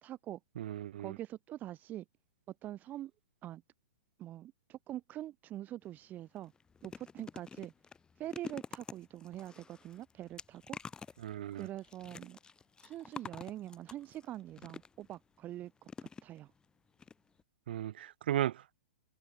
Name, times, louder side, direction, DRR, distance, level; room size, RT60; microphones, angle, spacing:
voice 1, 0.0-0.4 1.0-2.1 2.6-3.1 3.4-3.6 4.2-6.5 6.8-7.7 8.2-10.8 11.5-12.4 12.8-16.5, right 13 dB, 25° right, 2.1 m, -44 dB
voice 2, 0.6-1.1 11.2-11.7 17.7-18.8, right 12 dB, 55° right, 0.4 m, -36 dB
sound 1, 5.8-6.0 6.4-15.2 15.9-16.7 17.0-17.1 17.4-17.5, left 5 dB, 10° left, 2.1 m, -49 dB
open air
figure-of-eight pair, 110°, 6 cm